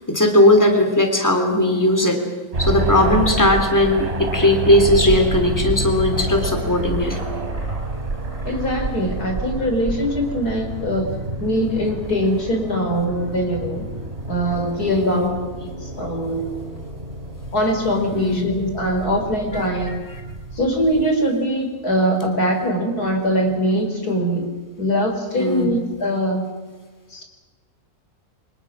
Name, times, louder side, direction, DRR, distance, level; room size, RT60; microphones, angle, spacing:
voice 1, 0.1-2.2 2.6-7.2 14.9-15.3 18.1-18.4 19.5-19.9 25.4-25.7, left 1 dB, 10° left, 4 dB, 3.3 m, -18 dB
sound 1, 2.5-21.1, right 1 dB, 40° right, 4.9 m, -28 dB
voice 2, 8.4-13.9 14.3-16.5 17.5-20.0 20.5-24.5 24.8-26.5 27.1-27.2, equal, 90° left, 3 dB, 4.5 m, -22 dB
29.0 x 24.5 x 6.2 m, 1.3 s
omnidirectional pair, 1.6 m